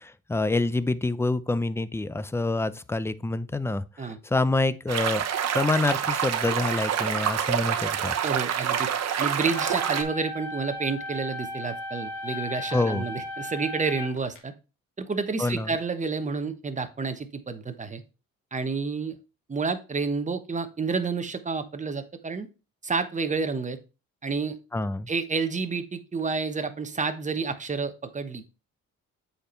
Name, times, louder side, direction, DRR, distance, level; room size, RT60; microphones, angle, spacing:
voice 1, 0.0-5.2 5.5-8.2 12.7-13.1 15.4-15.7 24.7-25.1, left 2 dB, 10° left, 0.5 m, -27 dB
sound 1, 4.9-10.0, right 8 dB, 60° right, 1.1 m, -27 dB
voice 2, 8.2-8.9 9.2-14.5 15.0-18.0 18.5-19.2 19.5-22.5 22.8-23.8 24.2-24.6 25.1-28.4, right 4 dB, 25° right, 1.1 m, -29 dB
sound 2, 9.4-14.4, left 2 dB, 90° left, 1.8 m, -36 dB
7.9 x 4.5 x 4.4 m
cardioid pair, 90°, 30 cm